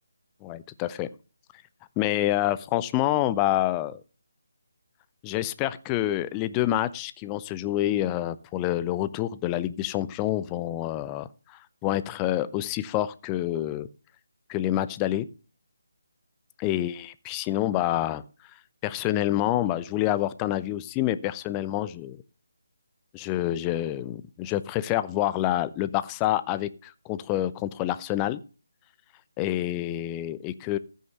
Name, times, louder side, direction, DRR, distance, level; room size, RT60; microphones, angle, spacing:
voice 1, 0.4-1.1 2.0-4.0 5.2-13.9 14.5-15.3 16.6-18.2 18.8-22.2 23.1-28.4 29.4-30.8, left 13 dB, 15° left, 15 dB, 0.5 m, -27 dB
14.5 x 6.5 x 5.6 m, 0.36 s
figure-of-eight pair, 150°, 0 cm